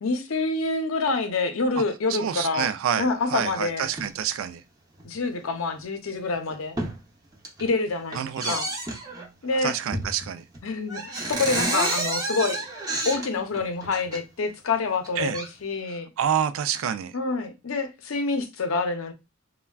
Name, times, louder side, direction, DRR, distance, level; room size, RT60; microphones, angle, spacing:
voice 1, 0.0-2.7 3.0-3.9 5.0-6.8 7.6-8.2 8.5-8.7 9.4-9.7 10.6-12.7 13.0-16.1 17.1-19.1, left 3 dB, 75° left, 0.6 m, -27 dB
voice 2, 2.1-4.6 8.1-8.6 9.6-10.4 15.2-15.4 15.9-17.1, right 8 dB, 70° right, 0.3 m, -28 dB
sound 1, 3.9-4.1 5.0-5.1 5.8-5.9 6.3-7.0 7.3-7.7 8.1-9.3 9.9-10.3 10.5-10.6 10.9-14.2 14.9-15.5, right 2 dB, 20° right, 0.6 m, -30 dB
3.3 x 2.2 x 2.2 m
head